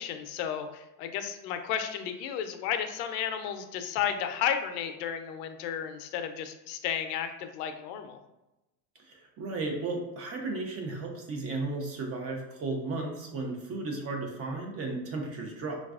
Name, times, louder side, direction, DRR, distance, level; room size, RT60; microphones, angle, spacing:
voice 1, 0.0-8.2, left 9 dB, 80° left, 8 dB, 0.6 m, -33 dB
voice 2, 9.1-15.8, right 3 dB, 30° right, 1 dB, 0.5 m, -34 dB
4.0 x 2.3 x 2.3 m, 0.97 s
supercardioid pair, 135°, 48 cm